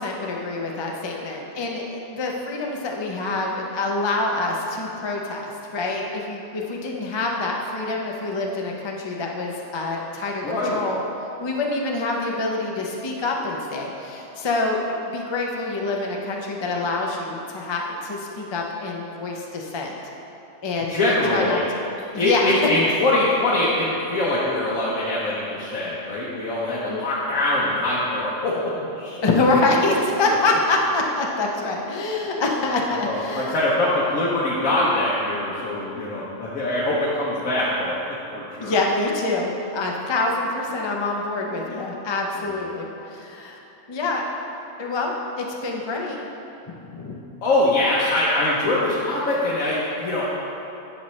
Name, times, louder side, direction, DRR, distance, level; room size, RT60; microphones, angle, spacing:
voice 1, 0.0-11.0 11.4-20.0 20.6-21.6 22.1-22.5 26.9-27.0 29.2-33.5 38.6-43.6 43.9-44.2 44.8-46.2 46.9-47.2, left 2 dB, 35° left, -1 dB, 0.4 m, -26 dB
voice 2, 10.4-10.8 20.9-21.6 22.2-29.2 32.9-38.8 47.4-50.5, left 1 dB, 85° left, -7 dB, 1.3 m, -23 dB
9.9 x 5.5 x 3.1 m, 2.9 s
omnidirectional pair, 1.4 m